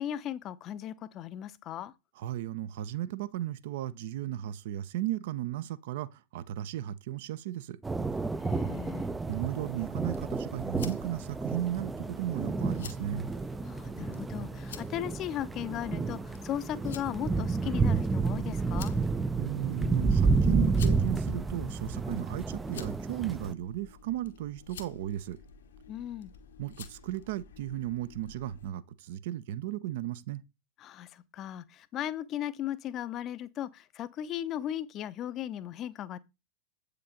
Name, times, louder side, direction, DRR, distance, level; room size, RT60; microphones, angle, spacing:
voice 1, 0.0-1.9 8.4-9.1 13.6-18.9 25.9-26.3 30.8-36.2, left 11 dB, 35° left, 0.7 m, -37 dB
voice 2, 2.2-7.8 9.3-13.3 19.4-25.4 26.6-30.4, right 13 dB, 55° right, 0.7 m, -35 dB
sound 1, 7.8-23.5, right 4 dB, 10° right, 0.5 m, -30 dB
sound 2, 9.9-28.7, left 6 dB, 60° left, 1.1 m, -51 dB
8.5 x 6.7 x 3.8 m
figure-of-eight pair, 90°, 0 cm